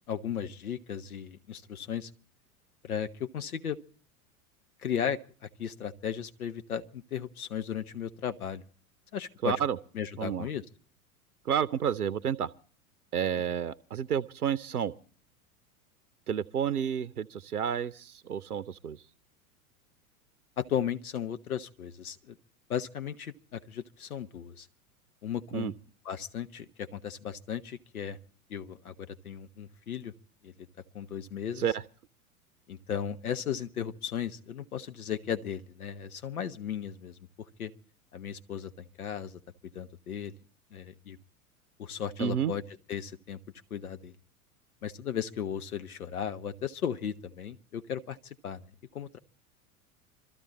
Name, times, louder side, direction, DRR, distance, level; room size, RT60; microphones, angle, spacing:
voice 1, 0.1-2.1 2.8-3.8 4.8-8.6 9.1-9.5 9.9-10.6 20.6-22.4 22.7-24.7 25.2-25.7 26.0-28.2 28.5-30.1 30.4-30.5 30.9-31.6 32.7-37.2 37.6-37.7 38.1-39.4 39.7-40.3 40.7-41.2 41.8-42.6 42.9-43.4 43.7-44.1 44.8-49.2, left 8 dB, 75° left, 1.0 m, -36 dB
voice 2, 9.4-9.8 10.2-10.5 11.4-12.5 13.1-14.9 16.3-19.0 25.5-25.7 31.6-31.8 42.2-42.5, right 8 dB, 85° right, 0.7 m, -30 dB
23.5 x 14.0 x 4.1 m
figure-of-eight pair, 85°, 44 cm